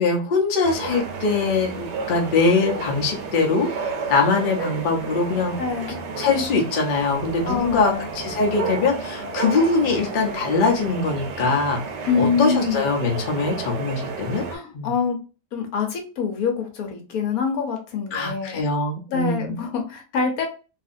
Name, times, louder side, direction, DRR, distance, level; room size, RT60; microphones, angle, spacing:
voice 1, 0.0-5.6 6.2-11.8 12.1-14.4 14.7-14.9 18.1-19.6, left 4 dB, 80° left, 1 dB, 0.4 m, -22 dB
sound 1, 0.6-14.6, right 4 dB, 80° right, 1.3 m, -32 dB
voice 2, 5.6-6.0 7.5-8.1 12.1-12.8 14.5-15.2 15.5-18.6 19.1-20.5, left 6 dB, 65° left, 3 dB, 1.1 m, -25 dB
2.8 x 2.5 x 2.5 m, 0.34 s
omnidirectional pair, 1.8 m